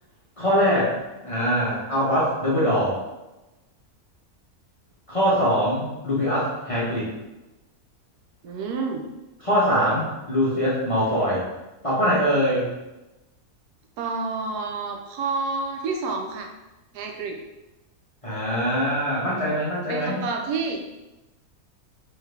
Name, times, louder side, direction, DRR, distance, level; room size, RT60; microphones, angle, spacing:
voice 1, 0.4-0.9 1.2-3.0 5.1-7.1 9.4-11.4 11.8-12.7 18.2-20.2, equal, 30° left, -8 dB, 0.7 m, -22 dB
voice 2, 8.4-9.0 14.0-16.5 16.9-17.4 19.9-20.8, right 4 dB, 80° right, 3 dB, 1.1 m, -29 dB
3.4 x 3.2 x 3.3 m, 1.0 s
omnidirectional pair, 1.7 m